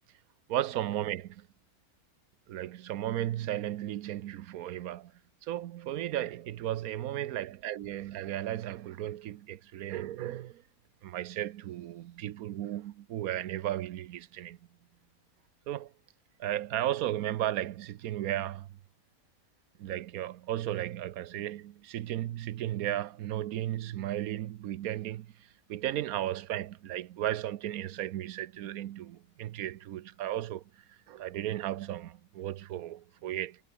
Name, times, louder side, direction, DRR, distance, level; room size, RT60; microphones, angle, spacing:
voice 1, 0.5-1.5 2.5-5.1 5.4-10.6 11.0-14.6 15.7-15.9 16.4-18.7 19.8-25.3 25.7-30.6 31.1-33.6, right 13 dB, 85° right, 1.1 m, -35 dB
omnidirectional pair, 1.5 m